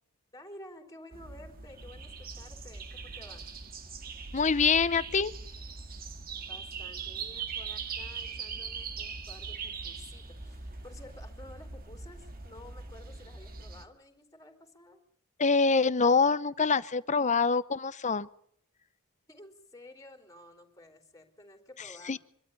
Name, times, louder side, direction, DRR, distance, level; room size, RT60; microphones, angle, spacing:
voice 1, 0.3-3.4 6.5-15.0 19.3-22.2, left 1 dB, 15° left, 5 dB, 3.7 m, -52 dB
sound 1, 1.1-13.8, right 5 dB, 45° right, 2.1 m, -41 dB
voice 2, 4.3-5.3 15.4-18.3 21.8-22.2, left 5 dB, 35° left, 16 dB, 0.8 m, -25 dB
25.5 x 13.0 x 9.9 m, 0.67 s
head